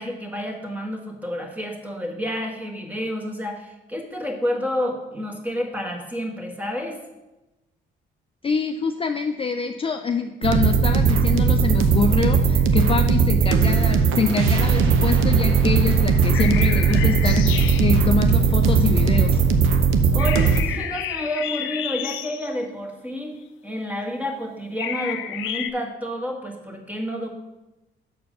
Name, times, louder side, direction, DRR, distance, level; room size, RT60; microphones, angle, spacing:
voice 1, 0.0-7.0 20.1-23.4 23.6-27.3, equal, 10° right, 0 dB, 1.5 m, -29 dB
voice 2, 8.4-19.4, left 5 dB, 30° left, 6 dB, 0.4 m, -25 dB
sound 1, 10.4-20.6, right 5 dB, 85° right, 0.7 m, -18 dB
sound 2, 14.3-14.7 14.9-15.3 15.6-15.7 15.9-19.4, equal, 55° right, 2.0 m, -28 dB
sound 3, 16.3-18.0 20.2-22.6 24.8-25.7, left 10 dB, 85° left, 0.6 m, -31 dB
6.6 x 4.5 x 6.5 m, 1.0 s
cardioid pair, 90°, 20 cm